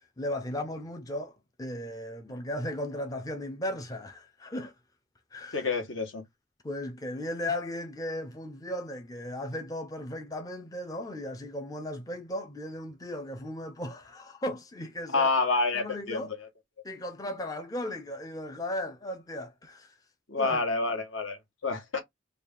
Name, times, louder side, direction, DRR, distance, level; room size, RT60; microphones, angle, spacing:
voice 1, 0.0-4.7 5.3-5.7 6.6-15.3 15.7-16.3 16.8-20.0 20.4-20.6, left 1 dB, 20° left, 0.4 m, -36 dB
voice 2, 5.5-6.2 15.1-16.3 20.3-22.0, left 3 dB, 70° left, 1.2 m, -28 dB
3.3 x 2.4 x 3.6 m
head